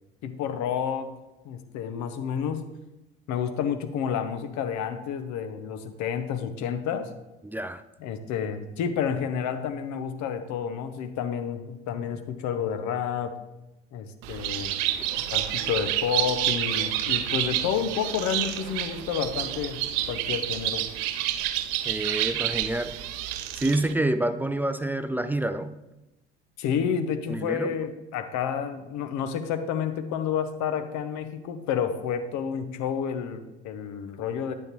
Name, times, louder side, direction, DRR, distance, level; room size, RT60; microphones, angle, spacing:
voice 1, 0.2-1.1 1.4-2.6 3.3-7.1 8.0-13.3 13.9-14.7 15.3-19.8 20.1-20.9 26.6-34.5, left 7 dB, 60° left, 0.8 m, -30 dB
voice 2, 7.4-7.8 21.8-23.0 23.5-25.7 27.3-27.7, right 1 dB, 5° right, 0.3 m, -28 dB
Bird, 14.2-23.9, right 12 dB, 70° right, 0.6 m, -29 dB
9.0 x 7.4 x 3.0 m
hypercardioid pair, 55°, 32 cm